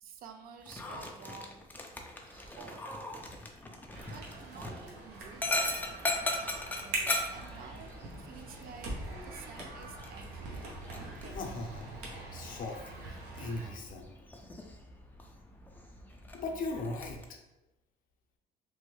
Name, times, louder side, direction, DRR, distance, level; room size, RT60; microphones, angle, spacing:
voice 1, 0.0-1.7 2.3-2.9 3.5-5.8 6.8-10.6, right 6 dB, 60° right, 7 dB, 0.4 m, -51 dB
Dog, 0.6-17.2, left 2 dB, 10° left, 0.4 m, -40 dB
sound 1, 3.9-13.7, right 2 dB, 85° right, 0.8 m, -43 dB
voice 2, 11.3-14.1 16.3-17.2, left 2 dB, 55° left, 1 dB, 0.6 m, -39 dB
3.2 x 2.1 x 3.1 m, 0.95 s
cardioid pair, 110°, 17 cm